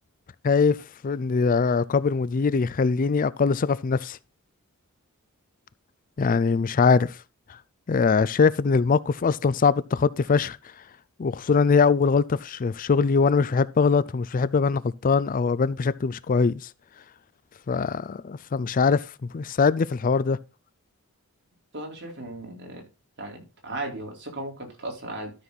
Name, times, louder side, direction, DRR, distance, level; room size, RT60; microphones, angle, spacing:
voice 1, 0.4-0.8 1.0-4.2 6.2-7.2 7.9-10.6 11.2-16.7 17.7-19.0 19.3-20.4, left 5 dB, 40° left, 0.4 m, -22 dB
voice 2, 21.7-22.9 23.2-25.3, right 2 dB, 55° right, 4.1 m, -36 dB
13.0 x 6.1 x 4.1 m
head